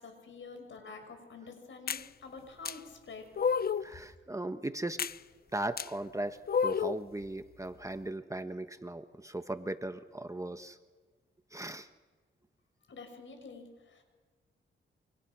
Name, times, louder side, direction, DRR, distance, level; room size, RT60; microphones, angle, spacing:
voice 1, 0.0-3.3 12.9-14.0, left 4 dB, 65° left, 6 dB, 6.2 m, -48 dB
sound 1, 1.9-2.1 2.7-2.8 3.4-3.9 5.0-5.2 5.8-5.9 6.5-7.0, left 6 dB, 45° left, 0.7 m, -30 dB
voice 2, 3.8-5.0 5.5-10.8 11.5-11.9, right 1 dB, 15° right, 9 dB, 1.4 m, -38 dB
29.0 x 25.5 x 6.2 m, 1.4 s
cardioid pair, 70°, 21 cm